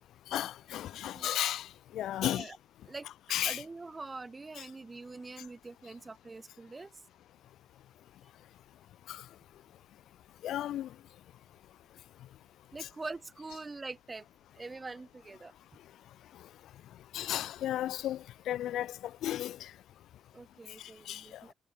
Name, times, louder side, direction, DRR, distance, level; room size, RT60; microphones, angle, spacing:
voice 1, 0.3-1.7 1.9-2.5 3.3-3.6 4.6-4.7 9.1-9.2 10.4-10.9 12.8-12.9 17.1-19.0 19.2-19.7 21.1-21.2, left 12 dB, 85° left, 2.0 m, -34 dB
voice 2, 2.2-2.6 2.9-3.1 3.4-6.9 12.7-14.2 14.5-15.5 20.3-21.5, right 3 dB, 25° right, 4.7 m, -44 dB
cardioid pair, 100°, 0 cm